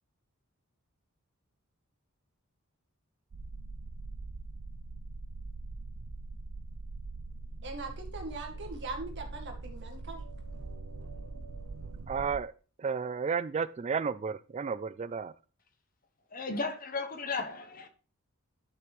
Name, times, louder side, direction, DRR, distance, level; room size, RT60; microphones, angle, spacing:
sound 1, 3.3-12.4, right 3 dB, 75° right, 0.6 m, -42 dB
voice 1, 7.6-10.2, right 3 dB, 55° right, 2.1 m, -41 dB
voice 2, 12.1-12.5 12.8-15.3, right 6 dB, 30° right, 0.3 m, -32 dB
voice 3, 16.3-17.9, left 3 dB, 40° left, 1.0 m, -35 dB
11.0 x 5.9 x 3.2 m
head